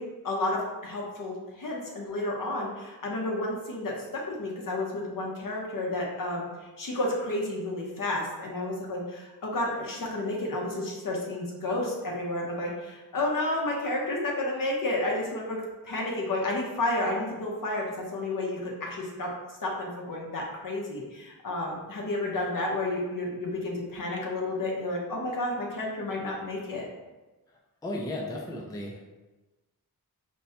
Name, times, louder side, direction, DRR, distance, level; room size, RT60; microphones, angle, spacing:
voice 1, 0.0-6.4 6.8-17.8 18.1-26.9, left 2 dB, 60° left, -2 dB, 0.9 m, -31 dB
voice 2, 27.8-29.0, left 1 dB, 10° left, -2 dB, 0.4 m, -34 dB
5.2 x 2.1 x 2.8 m, 1.1 s
wide cardioid pair, 115°, 37 cm